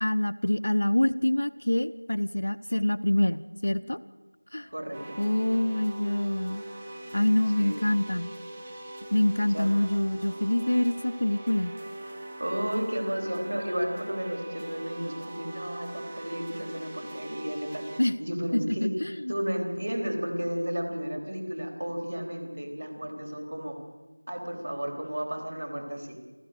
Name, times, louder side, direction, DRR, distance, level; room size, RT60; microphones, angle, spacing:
voice 1, 0.0-4.0 4.5-4.7 5.2-6.6 7.1-8.3 9.1-11.7 18.0-18.2 18.5-19.3, left 1 dB, 40° left, 10 dB, 0.6 m, -26 dB
voice 2, 4.7-5.2 7.6-7.8 9.5-9.7 12.4-18.9 19.3-23.8 24.3-26.2, equal, 45° right, 3 dB, 3.7 m, -33 dB
sound 1, 4.9-18.0, right 1 dB, 10° right, 0.7 m, -41 dB
28.0 x 14.0 x 6.7 m, 1.3 s
figure-of-eight pair, 175°, 0 cm